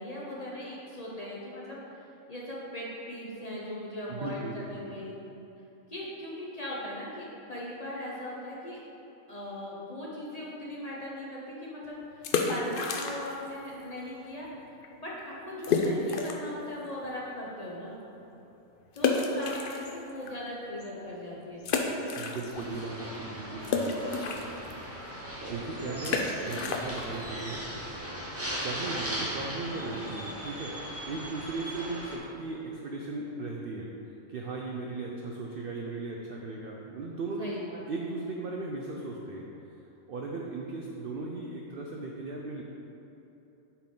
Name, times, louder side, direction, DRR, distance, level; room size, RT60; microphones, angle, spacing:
voice 1, 0.0-1.8 2.3-5.1 5.9-8.8 9.3-14.5 15.0-18.0 18.9-22.0 25.9-26.0 28.8-29.1 37.4-37.8, left 1 dB, 35° left, -5 dB, 0.7 m, -39 dB
voice 2, 4.1-4.7 22.2-24.1 25.5-27.7 28.6-33.9 34.3-37.5 37.9-39.5 40.1-42.6, right 3 dB, 80° right, -1 dB, 0.5 m, -37 dB
sound 1, 12.1-13.5 13.7-13.8 14.4-14.6 14.8-14.9 15.6-16.6 17.0-17.1 19.0-20.3 20.8-20.9 21.6-22.8 23.1-28.6, left 4 dB, 85° left, 0.4 m, -31 dB
sound 2, 22.5-32.2, right 1 dB, 20° right, 0.4 m, -38 dB
8.2 x 4.1 x 3.7 m, 3.0 s
omnidirectional pair, 1.6 m